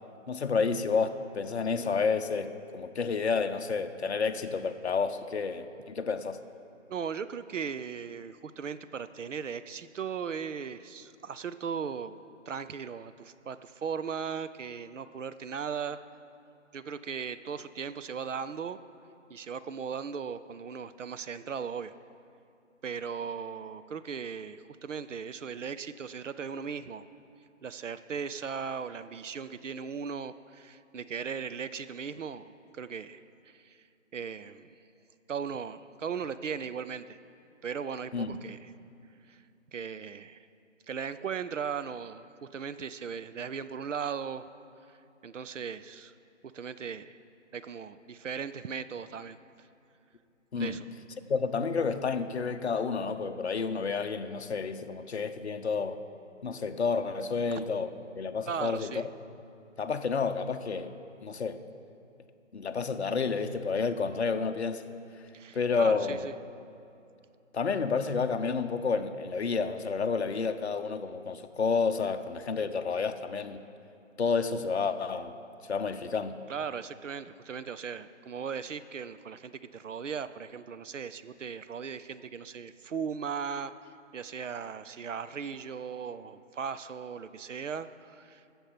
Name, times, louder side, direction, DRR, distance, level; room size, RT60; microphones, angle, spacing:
voice 1, 0.3-6.4 38.1-38.4 50.5-50.8 51.3-56.0 56.4-58.9 59.8-60.9 61.2-61.6 62.5-64.8 65.5-66.3 67.5-73.6 74.2-75.3 75.7-76.4, left 5 dB, 55° left, 8 dB, 0.8 m, -30 dB
voice 2, 6.9-12.2 12.5-16.0 16.7-18.8 19.3-21.9 22.8-27.0 27.6-33.8 34.1-34.7 35.3-37.2 37.6-38.7 39.3-39.4 39.7-40.5 40.9-42.3 42.5-44.4 45.2-46.1 46.5-47.2 47.5-49.7 50.5-50.9 57.5-57.6 58.5-59.1 65.3-66.3 76.5-88.6, right 6 dB, 70° right, 13 dB, 0.6 m, -38 dB
14.0 x 7.1 x 5.8 m, 2.8 s
figure-of-eight pair, 160°, 38 cm